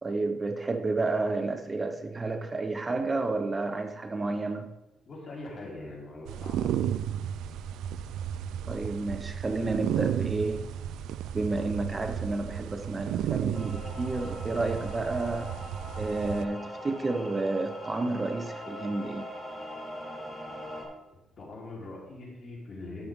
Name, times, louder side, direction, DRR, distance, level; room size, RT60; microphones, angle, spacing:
voice 1, 0.0-4.7 8.7-10.7 11.3-15.5 16.0-19.3, right 3 dB, 25° right, 0.8 m, -31 dB
voice 2, 5.1-7.0 21.1-23.1, left 2 dB, 45° left, 3.8 m, -42 dB
sound 1, 6.3-16.5, right 10 dB, 85° right, 0.3 m, -33 dB
sound 2, 13.5-20.9, equal, ahead, 3.7 m, -41 dB
13.0 x 6.9 x 3.6 m
cardioid pair, 90°, 0 cm